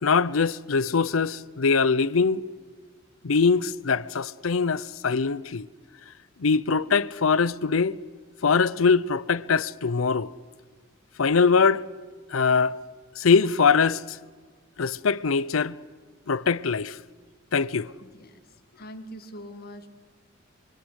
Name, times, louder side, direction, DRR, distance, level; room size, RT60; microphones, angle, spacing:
voice 1, 0.0-2.4 3.2-5.7 6.4-8.0 8.4-10.3 11.2-11.8 12.3-12.8 13.2-14.2 14.8-15.8 16.3-17.0 17.5-17.9, left 5 dB, 80° left, 0.7 m, -22 dB
voice 2, 18.0-19.9, equal, 50° left, 2.1 m, -43 dB
26.5 x 24.0 x 8.1 m
head